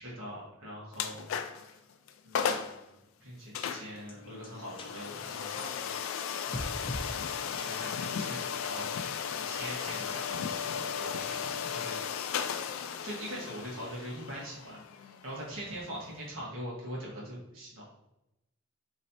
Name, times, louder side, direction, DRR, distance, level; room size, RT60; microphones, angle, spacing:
voice 1, 0.0-1.7 2.2-5.8 6.5-7.1 7.6-12.3 12.9-17.8, equal, 90° right, -5 dB, 1.5 m, -43 dB
sound 1, 0.9-1.7 2.1-2.2 2.3-2.8 3.5-16.3, left 7 dB, 80° left, 0.3 m, -36 dB
sound 2, 4.1-4.2 4.4-4.5 4.8-4.9 5.5-6.2 6.5-7.1 7.6-7.7 8.3-8.8, left 1 dB, 25° left, 0.5 m, -40 dB
4.1 x 3.1 x 2.7 m, 0.90 s
head